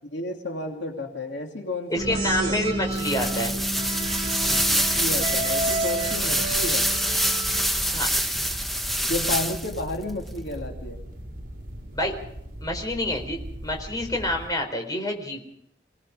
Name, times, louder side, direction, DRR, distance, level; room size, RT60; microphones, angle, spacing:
voice 1, 0.1-2.6 4.7-6.9 9.1-11.0, left 1 dB, 80° left, 2 dB, 2.8 m, -32 dB
voice 2, 1.9-3.5 7.9-8.1 11.9-12.1 12.6-15.4, left 1 dB, 20° left, 2 dB, 4.1 m, -28 dB
sound 1, 2.0-7.9, right 2 dB, 35° right, 2.8 m, -32 dB
sound 2, 2.0-14.5, right 1 dB, 50° right, 5.4 m, -35 dB
sound 3, 2.9-9.8, equal, ahead, 1.2 m, -25 dB
27.5 x 18.5 x 5.0 m, 0.73 s
head